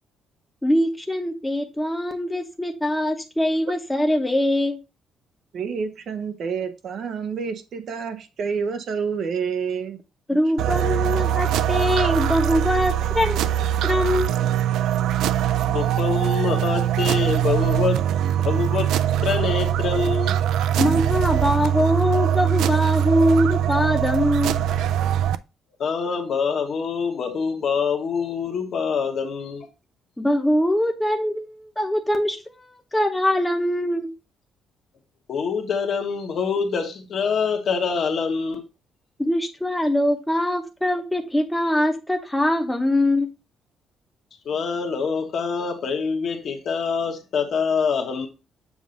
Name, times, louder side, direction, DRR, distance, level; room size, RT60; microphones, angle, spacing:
voice 1, 0.6-4.8 10.3-13.6 13.8-14.5 20.8-24.6 30.2-32.4 32.9-34.1 39.2-43.3, left 1 dB, 5° left, 0.8 m, -22 dB
voice 2, 5.5-10.0, right 6 dB, 50° right, 0.6 m, -28 dB
sound 1, 10.6-25.4, right 10 dB, 90° right, 0.3 m, -22 dB
voice 3, 15.6-18.0 18.3-18.9 19.2-20.4 25.8-29.7 35.3-38.6 44.4-48.3, left 5 dB, 45° left, 1.1 m, -25 dB
7.2 x 2.6 x 5.1 m
cardioid pair, 175°, 0 cm